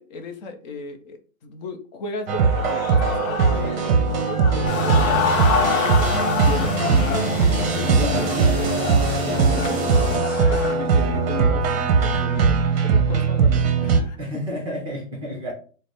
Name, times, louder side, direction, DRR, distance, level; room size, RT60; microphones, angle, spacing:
voice 1, 0.0-8.2 8.5-8.7 9.2-14.2, left 4 dB, 35° left, 6 dB, 0.6 m, -35 dB
sound 1, 2.3-14.0, right 5 dB, 45° right, 0.7 m, -20 dB
sound 2, 2.4-10.7, left 6 dB, 75° left, 0.8 m, -28 dB
sound 3, 4.7-10.2, left 2 dB, 15° left, 1.2 m, -29 dB
voice 2, 7.7-8.6 9.3-9.4 14.2-15.5, equal, 10° right, -1 dB, 0.6 m, -31 dB
3.8 x 2.0 x 3.4 m, 0.40 s
hypercardioid pair, 135°, 41 cm